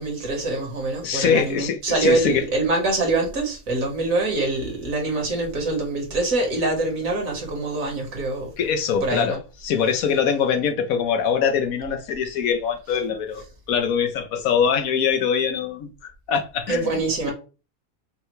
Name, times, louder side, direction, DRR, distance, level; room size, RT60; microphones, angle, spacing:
voice 1, 0.0-8.5 9.0-9.4 16.7-17.3, right 2 dB, 70° right, 1.8 m, -24 dB
voice 2, 1.0-2.4 8.6-9.4 9.6-16.9, left 7 dB, 75° left, 1.1 m, -23 dB
5.6 x 2.2 x 3.1 m
omnidirectional pair, 1.5 m